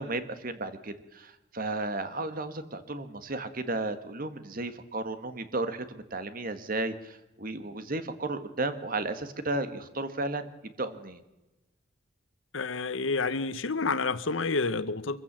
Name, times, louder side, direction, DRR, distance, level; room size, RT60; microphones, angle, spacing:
voice 1, 0.0-11.2, right 2 dB, 45° right, 1.6 m, -34 dB
voice 2, 12.5-15.2, left 4 dB, 80° left, 1.0 m, -29 dB
24.0 x 15.0 x 7.5 m
head